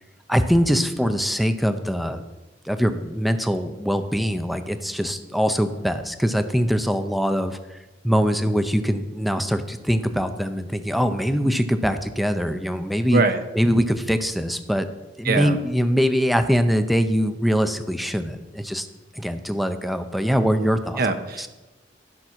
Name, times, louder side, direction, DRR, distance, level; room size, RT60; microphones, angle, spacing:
voice 1, 0.3-2.2 2.7-7.8 8.0-13.2 13.5-14.9 15.2-18.9 19.2-21.0 21.4-21.5, equal, ahead, 8 dB, 0.6 m, -23 dB
voice 2, 15.2-15.6 21.0-21.5, right 3 dB, 55° right, 8 dB, 0.8 m, -22 dB
12.5 x 6.0 x 5.9 m, 1.1 s
head